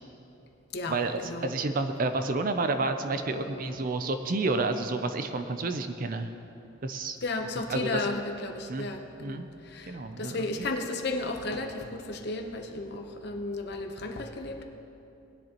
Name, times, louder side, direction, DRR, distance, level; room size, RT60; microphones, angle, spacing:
voice 1, 0.9-6.3 6.8-7.2 7.7-8.1 8.7-8.9 9.2-9.5 9.9-10.7, right 3 dB, 45° right, 8 dB, 0.5 m, -30 dB
voice 2, 3.3-3.8 7.2-14.6, left 2 dB, 55° left, 4 dB, 0.9 m, -34 dB
19.5 x 10.5 x 3.0 m, 2.9 s
head